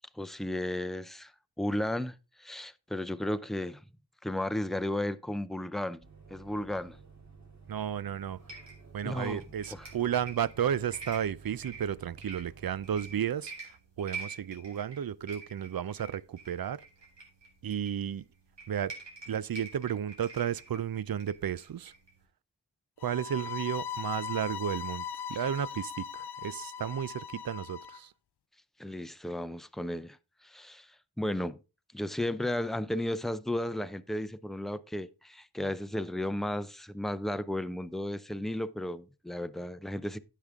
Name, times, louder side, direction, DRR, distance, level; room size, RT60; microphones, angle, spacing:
voice 1, 0.2-1.3 1.6-3.8 4.2-6.0 6.3-7.0 9.0-9.4 9.7-9.9 28.8-30.2 30.4-30.9 31.2-31.6 31.9-40.2, left 1 dB, ahead, 0.6 m, -34 dB
sound 1, 6.0-13.1, right 4 dB, 40° right, 2.8 m, -53 dB
voice 2, 7.7-8.4 8.9-16.8 17.6-18.2 18.7-18.9 19.3-21.9 23.0-25.0 25.3-28.1, right 9 dB, 60° right, 0.5 m, -33 dB
sound 2, 8.2-22.2, right 4 dB, 85° right, 3.2 m, -47 dB
sound 3, 23.0-28.0, left 8 dB, 70° left, 0.5 m, -39 dB
10.0 x 7.4 x 3.6 m
wide cardioid pair, 45°, 41 cm